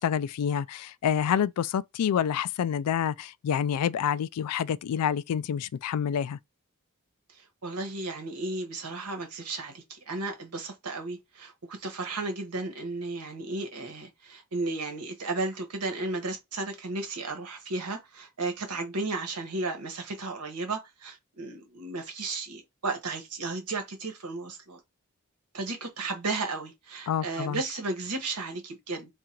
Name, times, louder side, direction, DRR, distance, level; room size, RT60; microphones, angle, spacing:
voice 1, 0.0-6.4 27.1-27.6, left 8 dB, 85° left, 0.3 m, -28 dB
voice 2, 7.3-24.8 25.5-29.1, right 3 dB, 85° right, 1.2 m, -34 dB
3.7 x 2.5 x 4.4 m
head